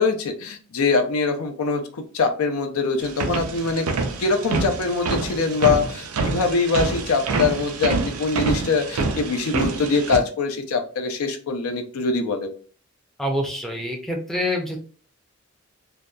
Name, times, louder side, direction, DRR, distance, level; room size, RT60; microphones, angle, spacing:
voice 1, 0.0-3.9 4.2-12.5, left 4 dB, 90° left, 5 dB, 0.5 m, -23 dB
sound 1, 3.0-10.2, right 3 dB, 85° right, 0.4 m, -26 dB
voice 2, 13.2-14.8, left 1 dB, ahead, 1 dB, 0.4 m, -26 dB
2.7 x 2.2 x 2.2 m, 0.41 s
head